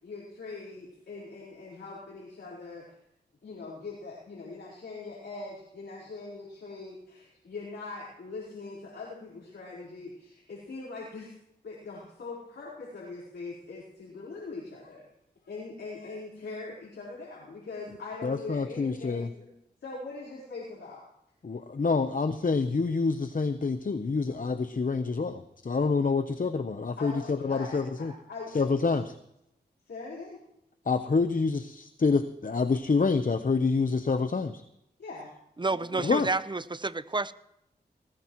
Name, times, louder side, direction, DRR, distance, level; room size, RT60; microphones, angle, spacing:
voice 1, 0.0-3.0 3.4-11.3 11.6-15.1 15.4-19.5 19.8-21.0 27.0-28.9 29.9-30.4 35.0-35.3 35.7-36.1, left 3 dB, 90° left, -6 dB, 4.5 m, -42 dB
voice 2, 18.2-19.3 21.4-28.1 28.5-29.1 30.9-34.6 36.0-36.3, left 4 dB, 50° left, 9 dB, 0.9 m, -27 dB
voice 3, 35.6-37.3, right 3 dB, 25° right, 14 dB, 0.8 m, -30 dB
19.5 x 19.5 x 3.2 m, 0.81 s
cardioid pair, 45°, 18 cm